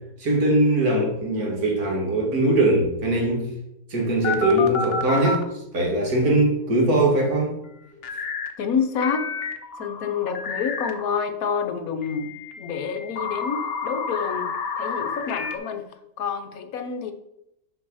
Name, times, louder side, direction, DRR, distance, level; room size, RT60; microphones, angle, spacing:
voice 1, 0.2-3.5 3.9-7.5, right 1 dB, 65° right, -1 dB, 2.5 m, -21 dB
sound 1, 4.2-5.4 8.0-8.5 9.0-11.1 12.0-15.6, left 4 dB, 45° left, 0.9 m, -30 dB
voice 2, 8.6-9.3 9.8-12.3 12.6-14.5 14.8-15.8 16.2-17.1, left 6 dB, 65° left, 7 dB, 1.3 m, -28 dB
6.5 x 5.5 x 5.5 m, 0.83 s
omnidirectional pair, 1.7 m